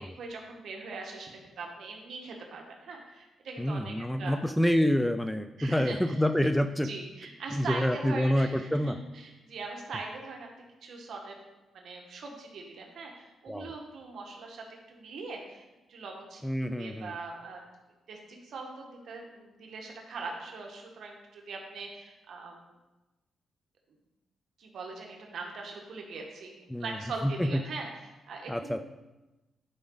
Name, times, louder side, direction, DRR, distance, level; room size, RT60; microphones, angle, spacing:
voice 1, 0.0-4.4 5.6-6.0 6.8-10.5 10.8-11.4 11.7-16.4 16.7-17.6 18.1-22.7 24.6-28.8, right 3 dB, 70° right, 1 dB, 1.4 m, -41 dB
voice 2, 3.6-6.9 7.5-9.0 13.5-13.7 16.4-17.1 26.7-27.0 27.2-27.5 28.5-28.8, equal, 5° left, 9 dB, 0.3 m, -27 dB
10.5 x 5.1 x 3.9 m, 1.0 s
cardioid pair, 105°, 0 cm